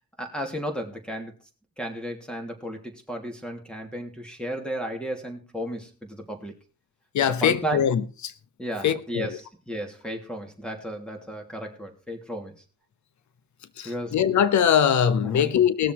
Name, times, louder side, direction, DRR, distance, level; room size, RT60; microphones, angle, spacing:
voice 1, 0.2-1.3 1.8-6.5 7.4-7.8 8.6-12.6 13.8-14.2 15.2-15.5, equal, 5° left, 3.0 m, -34 dB
voice 2, 7.1-8.3 8.8-9.4 13.8-15.9, left 8 dB, 70° left, 1.0 m, -22 dB
19.5 x 7.0 x 4.7 m
cardioid pair, 110°, 30 cm